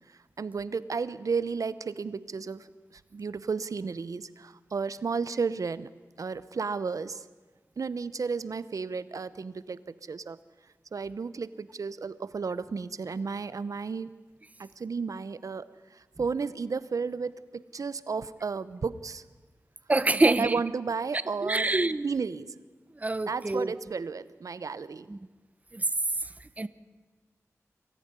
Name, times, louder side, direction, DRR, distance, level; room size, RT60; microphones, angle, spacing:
voice 1, 0.0-5.9 6.2-7.3 7.8-10.4 10.9-14.1 14.6-19.2 20.1-21.7 22.0-22.5 23.3-25.1, right 5 dB, 75° right, 16 dB, 0.8 m, -33 dB
voice 2, 19.9-20.6 21.4-22.1 23.0-23.7 25.1-25.2 25.7-25.8 26.6-26.7, right 2 dB, 25° right, 14 dB, 0.8 m, -25 dB
23.5 x 14.5 x 9.7 m, 1.3 s
wide cardioid pair, 85°, 6 cm